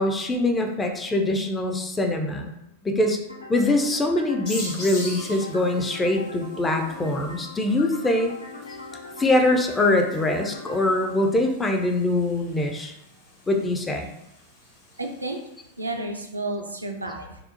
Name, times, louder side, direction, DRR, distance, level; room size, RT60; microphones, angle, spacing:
voice 1, 0.0-2.6 2.8-3.2 3.5-8.3 9.2-12.9 13.5-14.1, left 1 dB, 15° left, 3 dB, 0.4 m, -23 dB
sound 1, 3.3-11.3, left 2 dB, 75° left, 0.4 m, -41 dB
sound 2, 4.4-15.8, left 2 dB, 45° left, 0.9 m, -44 dB
voice 2, 15.0-15.4 15.8-17.4, right 2 dB, 80° right, 2 dB, 0.3 m, -31 dB
2.7 x 2.0 x 2.6 m, 0.84 s
figure-of-eight pair, 90°, 0 cm